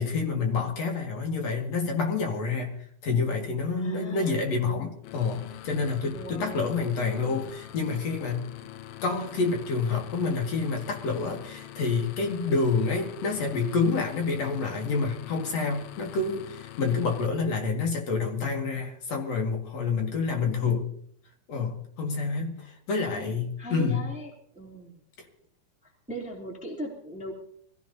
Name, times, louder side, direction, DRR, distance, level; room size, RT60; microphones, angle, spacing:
voice 1, 0.0-2.7 3.0-8.5 9.0-20.9 21.5-24.0, left 4 dB, 50° left, 1 dB, 2.7 m, -28 dB
voice 2, 3.8-4.4 6.1-6.9 22.9-25.0 25.8-27.3, right 1 dB, ahead, -1 dB, 2.3 m, -39 dB
sound 1, 5.0-17.3, left 12 dB, 80° left, 2.4 m, -44 dB
24.5 x 16.5 x 2.8 m, 0.65 s
omnidirectional pair, 4.6 m